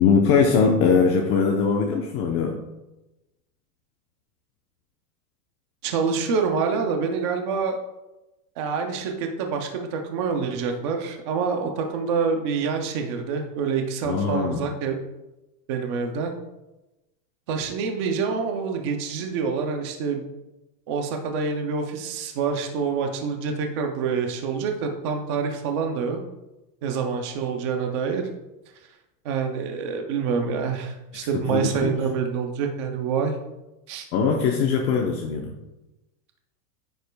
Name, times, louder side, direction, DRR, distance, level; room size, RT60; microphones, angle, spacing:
voice 1, 0.0-2.6 14.0-14.7 31.1-32.0 34.1-35.5, left 5 dB, 30° left, 1 dB, 0.7 m, -21 dB
voice 2, 5.8-7.8 8.6-15.0 15.7-16.3 17.5-20.3 20.9-26.2 26.8-28.2 29.2-33.3 33.9-34.1, right 5 dB, 20° right, 4 dB, 0.3 m, -26 dB
10.5 x 8.0 x 2.2 m, 1.0 s
supercardioid pair, 155°, 47 cm